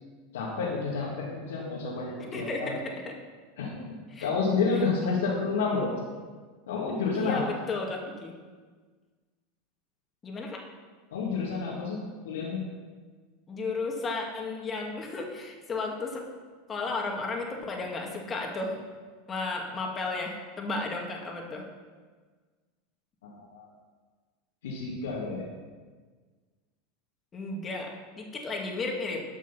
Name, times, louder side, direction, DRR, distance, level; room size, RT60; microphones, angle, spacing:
voice 1, 0.3-2.7 3.6-5.9 6.7-7.4 11.1-12.6 23.2-23.7 24.6-25.5, left 4 dB, 90° left, -7 dB, 2.2 m, -30 dB
voice 2, 2.3-3.1 4.1-4.3 7.1-8.3 10.2-10.6 13.5-16.3 16.7-18.8 19.3-21.7 27.3-29.2, left 3 dB, 25° left, 0 dB, 2.1 m, -33 dB
12.5 x 6.3 x 5.7 m, 1.5 s
hypercardioid pair, 110°, 0 cm